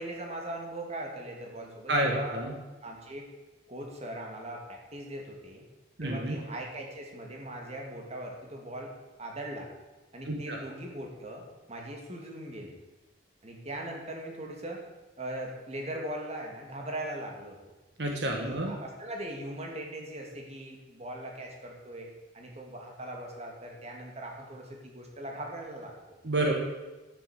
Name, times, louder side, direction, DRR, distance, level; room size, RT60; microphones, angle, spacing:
voice 1, 0.0-2.4 2.8-3.3 3.7-5.7 6.0-8.9 9.2-9.7 10.1-12.7 13.4-14.8 15.2-17.6 18.4-26.2, right 1 dB, 35° right, 0 dB, 2.5 m, -40 dB
voice 2, 1.9-2.5 6.0-6.4 10.3-10.6 18.0-18.7 26.2-26.5, right 1 dB, 65° right, 1 dB, 1.8 m, -29 dB
11.0 x 7.5 x 8.4 m, 1.1 s
head